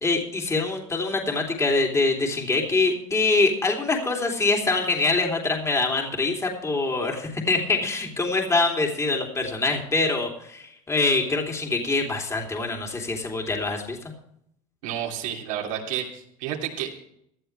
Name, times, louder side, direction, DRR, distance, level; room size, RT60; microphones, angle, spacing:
voice 1, 0.0-14.0, left 3 dB, 15° left, 1 dB, 3.0 m, -24 dB
voice 2, 14.8-16.9, right 10 dB, 85° right, -1 dB, 3.0 m, -30 dB
17.5 x 11.5 x 3.3 m, 0.72 s
supercardioid pair, 115°, 17 cm